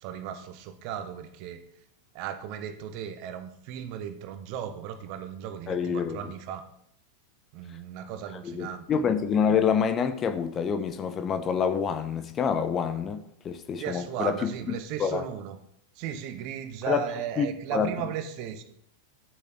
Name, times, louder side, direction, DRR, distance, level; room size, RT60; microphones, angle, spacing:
voice 1, 0.0-1.6 2.1-6.7 7.5-8.9 13.8-15.6 16.0-18.6, right 9 dB, 45° right, 1.3 m, -36 dB
voice 2, 5.7-6.3 8.4-15.2 16.9-17.1 17.4-17.9, left 7 dB, 25° left, 1.0 m, -27 dB
11.5 x 8.5 x 4.5 m
figure-of-eight pair, 90°, 0 cm